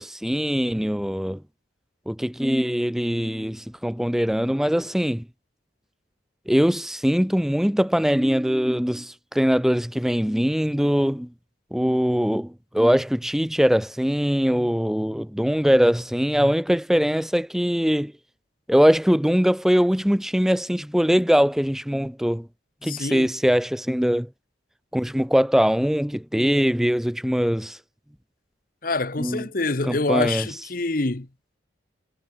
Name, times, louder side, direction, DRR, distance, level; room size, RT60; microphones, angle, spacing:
voice 1, 0.0-1.4 2.1-5.3 6.5-11.3 11.7-18.1 18.7-22.5 22.8-24.3 24.9-27.8 29.2-29.5 29.8-30.5, equal, ahead, 0.4 m, -22 dB
voice 2, 22.9-23.3 28.8-31.3, left 3 dB, 45° left, 1.0 m, -26 dB
head